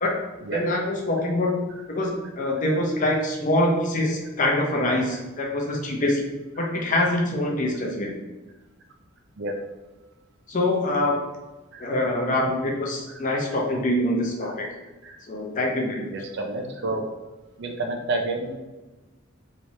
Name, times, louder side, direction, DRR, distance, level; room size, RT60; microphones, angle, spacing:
voice 1, 0.5-1.6 1.9-6.2 6.6-8.1 10.5-11.2 11.8-14.7 15.3-16.1, left 1 dB, 40° left, 0 dB, 0.6 m, -24 dB
voice 2, 16.1-17.0 17.6-18.6, right 2 dB, 60° right, 3 dB, 0.5 m, -29 dB
3.2 x 3.0 x 2.7 m, 1.1 s
head